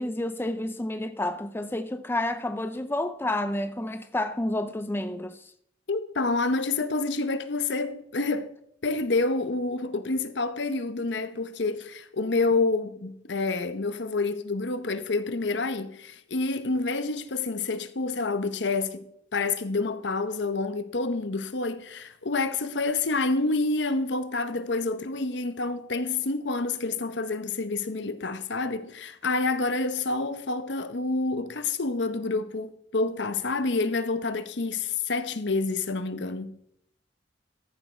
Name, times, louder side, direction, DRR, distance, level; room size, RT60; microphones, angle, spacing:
voice 1, 0.0-5.5, left 1 dB, 10° left, 0.5 m, -30 dB
voice 2, 5.9-8.5 8.8-19.1 19.3-36.6, left 3 dB, 70° left, 0.9 m, -28 dB
14.0 x 6.9 x 4.3 m
head